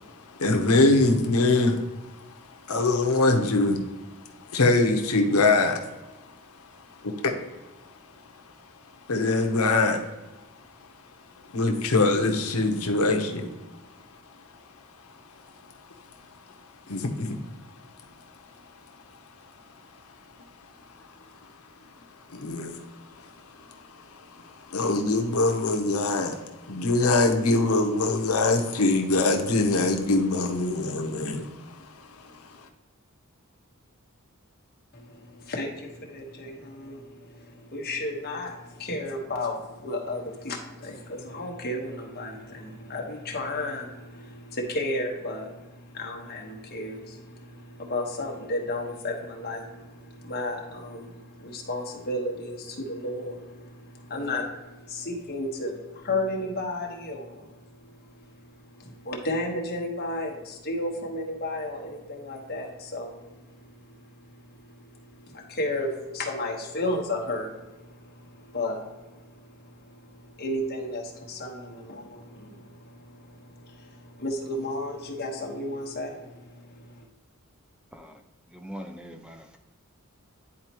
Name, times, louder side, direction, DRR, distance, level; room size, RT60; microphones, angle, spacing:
voice 1, 0.4-1.8 2.7-3.8 4.5-5.8 7.0-7.3 9.1-10.0 11.5-13.5 16.9-17.4 22.3-22.8 24.3-31.5 32.0-32.1, left 2 dB, 90° left, 4 dB, 0.9 m, -23 dB
voice 2, 34.9-57.6 58.2-58.3 58.7-63.2 64.3-64.4 65.3-77.0, left 1 dB, 45° left, 0 dB, 1.3 m, -33 dB
voice 3, 78.5-79.6, equal, 5° right, 5 dB, 0.4 m, -42 dB
9.8 x 4.3 x 3.0 m, 1.1 s
head